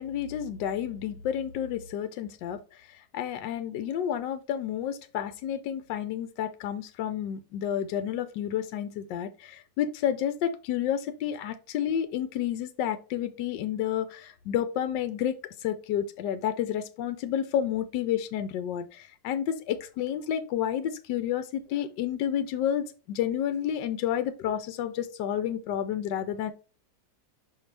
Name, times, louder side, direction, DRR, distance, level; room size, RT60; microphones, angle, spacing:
voice 1, 0.0-26.5, left 10 dB, 80° left, 10 dB, 1.2 m, -30 dB
5.6 x 5.5 x 3.3 m, 0.35 s
omnidirectional pair, 1.9 m